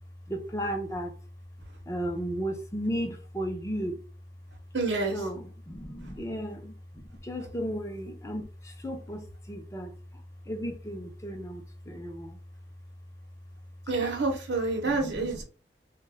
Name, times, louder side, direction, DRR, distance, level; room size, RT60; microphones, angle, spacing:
voice 1, 0.3-1.1 1.9-4.0 5.1-6.7 7.2-9.9 10.5-12.4 14.9-15.4, equal, 15° left, 0.5 m, -34 dB
voice 2, 4.7-5.2 13.9-15.4, right 3 dB, 90° right, 0.8 m, -28 dB
2.2 x 2.2 x 3.3 m
head